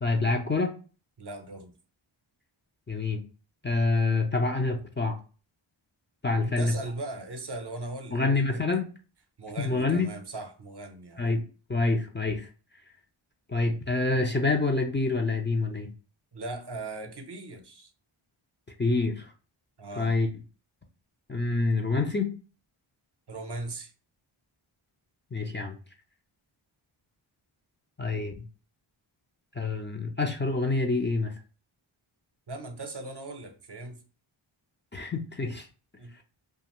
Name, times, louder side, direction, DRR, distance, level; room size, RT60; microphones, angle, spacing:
voice 1, 0.0-0.8 2.9-3.2 3.6-5.2 6.2-6.7 8.1-8.9 9.6-10.1 11.2-11.4 11.7-12.5 13.5-15.9 18.8-19.3 20.0-20.3 21.3-22.3 25.3-25.8 28.0-28.4 29.6-31.3 34.9-35.7, left 3 dB, 25° left, 0.5 m, -27 dB
voice 2, 1.2-1.7 6.4-8.2 8.5-8.6 9.4-11.3 16.3-17.9 19.8-20.1 23.3-23.9 32.5-34.0 36.0-36.2, right 2 dB, 55° right, 0.7 m, -38 dB
2.5 x 2.4 x 2.9 m
wide cardioid pair, 45°, 50 cm